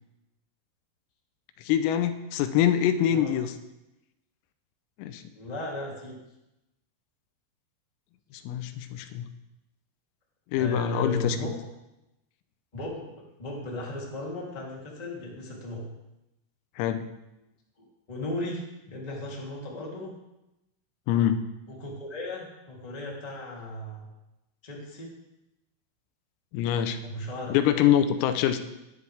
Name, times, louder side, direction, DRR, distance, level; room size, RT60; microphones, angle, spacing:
voice 1, 1.7-3.5 5.0-5.2 8.5-9.3 10.5-11.5 16.8-17.1 21.1-21.4 26.5-27.0 27.5-28.6, left 10 dB, 85° left, 9 dB, 3.5 m, -24 dB
voice 2, 5.3-6.2 10.5-11.5 12.7-15.9 18.1-20.1 21.7-24.1 24.6-25.2 27.0-27.6, left 1 dB, 15° left, -4 dB, 1.7 m, -36 dB
20.5 x 11.5 x 3.5 m, 0.93 s
omnidirectional pair, 6.0 m